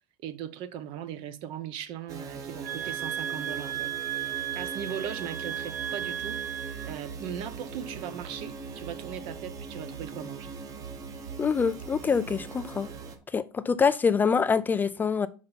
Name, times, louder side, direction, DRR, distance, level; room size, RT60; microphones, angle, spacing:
voice 1, 0.2-3.9 4.5-6.4 6.8-10.5, right 9 dB, 55° right, 1.0 m, -38 dB
sound 1, 2.1-13.2, right 5 dB, 35° right, 1.2 m, -40 dB
sound 2, 2.6-6.9, right 11 dB, 85° right, 2.4 m, -34 dB
voice 2, 11.4-12.9 13.3-15.3, left 6 dB, 20° left, 0.3 m, -25 dB
6.8 x 5.3 x 4.1 m
supercardioid pair, 130°, 10 cm